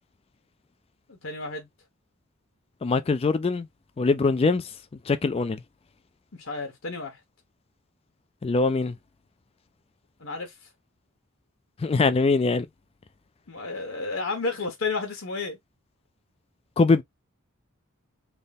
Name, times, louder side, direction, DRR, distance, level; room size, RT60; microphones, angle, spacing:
voice 1, 1.1-1.7 6.3-7.2 10.2-10.7 13.5-15.6, left 3 dB, 65° left, 1.0 m, -32 dB
voice 2, 2.8-3.7 4.0-4.6 5.1-5.6 8.4-8.9 11.8-12.7 16.8-17.0, left 3 dB, 25° left, 0.3 m, -22 dB
3.5 x 2.1 x 4.0 m
head